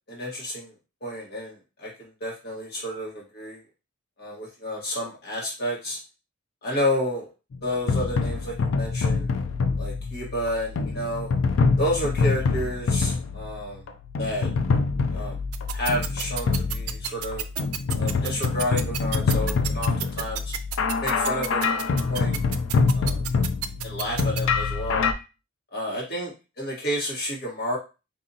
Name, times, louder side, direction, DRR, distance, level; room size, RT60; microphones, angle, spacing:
voice 1, 0.1-0.7 1.0-3.6 4.2-6.0 6.6-7.2 7.6-9.3 9.8-11.3 11.8-13.8 14.2-14.5 15.1-15.4 15.7-17.4 17.9-20.6 21.0-22.4 22.9-23.2 23.8-25.1 25.7-27.8, left 1 dB, 50° left, -3 dB, 1.4 m, -30 dB
sound 1, 7.5-25.1, left 4 dB, 65° left, 0.4 m, -25 dB
sound 2, 15.5-24.4, right 12 dB, 90° right, 0.4 m, -30 dB
3.9 x 2.6 x 2.7 m, 0.29 s
head